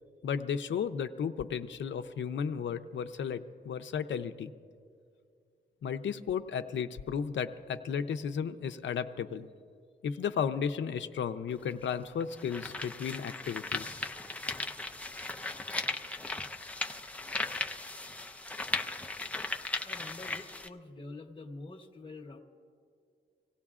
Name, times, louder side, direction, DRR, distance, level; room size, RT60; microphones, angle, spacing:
voice 1, 0.2-4.5 5.8-9.5 10.0-14.1, left 7 dB, 80° left, 10 dB, 0.6 m, -34 dB
sound 1, 11.5-11.6 12.2-20.7, left 2 dB, 5° left, 0.4 m, -37 dB
voice 2, 19.8-22.4, left 2 dB, 25° left, 1 dB, 1.0 m, -46 dB
26.0 x 17.5 x 2.4 m, 2.3 s
wide cardioid pair, 155°, 19 cm